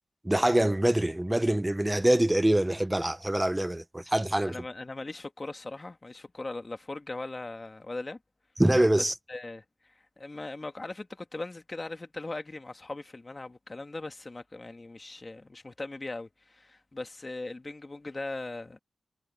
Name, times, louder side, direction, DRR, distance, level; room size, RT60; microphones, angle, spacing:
voice 1, 0.2-4.6 8.6-9.1, right 1 dB, 10° right, 0.7 m, -24 dB
voice 2, 4.4-8.2 9.3-18.8, left 2 dB, 30° left, 1.8 m, -39 dB
wide cardioid pair, 90°, 0 cm